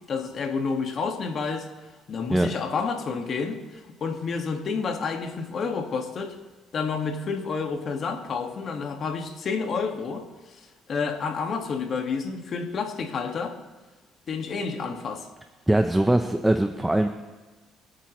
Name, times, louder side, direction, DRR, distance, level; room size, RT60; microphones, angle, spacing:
voice 1, 0.1-1.7 2.1-6.3 6.7-10.6 10.9-13.6 14.3-15.3, left 5 dB, 50° left, 3 dB, 2.0 m, -29 dB
voice 2, 15.7-17.1, right 1 dB, 10° right, 6 dB, 0.8 m, -21 dB
25.0 x 8.8 x 3.2 m, 1.2 s
cardioid pair, 90°, 0 cm